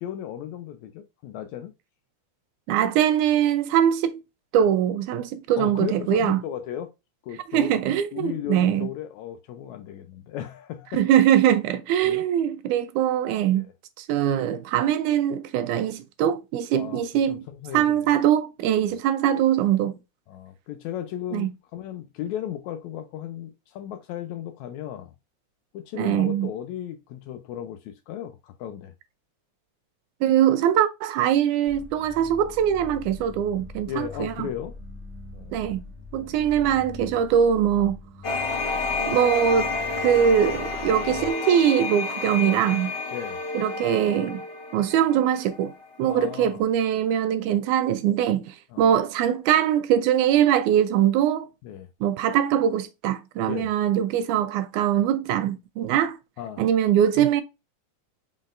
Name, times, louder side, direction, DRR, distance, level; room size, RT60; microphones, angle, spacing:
voice 1, 0.0-1.7 5.6-6.9 7.2-7.7 8.1-11.0 12.0-12.2 13.5-13.7 16.7-18.1 20.3-25.1 25.7-28.9 33.9-34.7 35.3-35.7 36.2-36.5 43.1-43.4 46.0-46.6 48.7-48.9 51.6-51.9 53.5-53.7 56.4-56.6, left 10 dB, 80° left, 1.7 m, -35 dB
voice 2, 2.7-4.2 4.5-6.4 7.5-8.9 10.9-13.7 14.0-17.4 17.7-19.9 21.3-21.5 26.0-26.5 30.2-34.5 35.5-35.8 36.1-38.0 39.1-39.7 40.0-42.9 43.6-44.4 44.7-45.7 46.0-51.5 52.0-56.2 56.6-57.4, right 10 dB, 80° right, 1.9 m, -22 dB
sound 1, 31.7-41.3, left 3 dB, 10° right, 1.4 m, -42 dB
sound 2, 38.2-45.8, left 3 dB, 45° left, 1.6 m, -30 dB
5.3 x 3.8 x 2.4 m
omnidirectional pair, 3.7 m